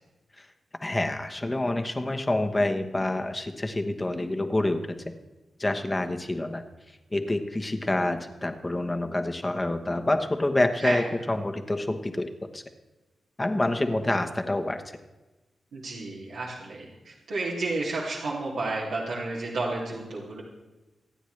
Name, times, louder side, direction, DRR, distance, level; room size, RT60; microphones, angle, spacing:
voice 1, 0.8-5.1 5.6-6.6 7.1-12.6 13.4-14.8, left 1 dB, 20° left, 6 dB, 1.1 m, -27 dB
voice 2, 15.7-20.4, right 2 dB, 85° right, -6 dB, 2.6 m, -31 dB
26.0 x 9.2 x 3.3 m, 1.1 s
cardioid pair, 95°, 0 cm